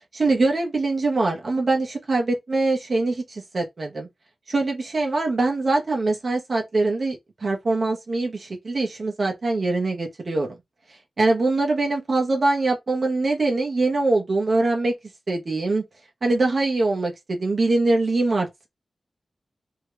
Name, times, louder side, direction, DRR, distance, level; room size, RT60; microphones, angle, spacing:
voice 1, 0.1-4.1 4.5-10.5 11.2-14.9 15.3-15.8 16.2-18.7, right 2 dB, 60° right, 0.9 m, -23 dB
2.8 x 2.3 x 3.0 m
cardioid pair, 55°, 0 cm